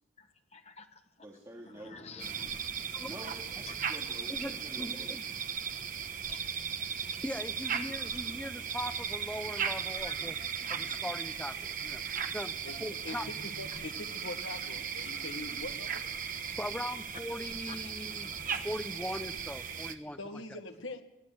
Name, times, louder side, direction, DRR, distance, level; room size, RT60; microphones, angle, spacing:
voice 1, 0.5-0.8 1.9-2.9 3.7-3.8 6.3-6.4 16.5-16.6 18.1-18.7, left 4 dB, 35° left, 1.4 m, -50 dB
voice 2, 1.2-2.3 3.1-5.1, equal, 20° right, 2.6 m, -48 dB
sound 1, 2.2-19.9, right 7 dB, 40° right, 1.2 m, -37 dB
voice 3, 4.3-5.3 7.2-10.4 10.7-12.0 12.3-12.5 12.8-13.3 16.6-18.3 18.6-20.4, left 1 dB, 5° left, 0.7 m, -40 dB
voice 4, 12.6-16.0 20.2-21.0, left 2 dB, 85° left, 2.0 m, -43 dB
22.0 x 15.0 x 7.9 m
head